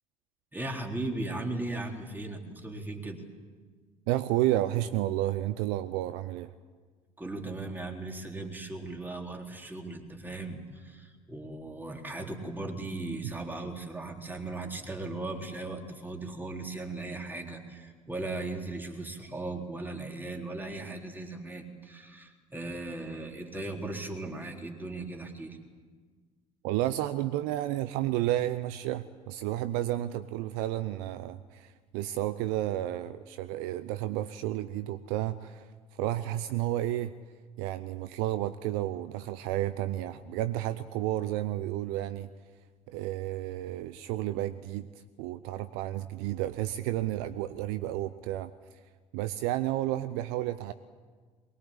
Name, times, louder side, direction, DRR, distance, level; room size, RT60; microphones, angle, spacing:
voice 1, 0.5-3.2 7.2-25.6, right 2 dB, 10° right, 2 dB, 3.9 m, -37 dB
voice 2, 4.1-6.5 13.2-13.3 26.6-37.1 37.6-42.3 42.9-44.9 45.2-48.5 49.1-50.7, right 14 dB, 60° right, 14 dB, 0.7 m, -31 dB
23.0 x 21.0 x 8.6 m, 1.5 s
figure-of-eight pair, 60°, 18 cm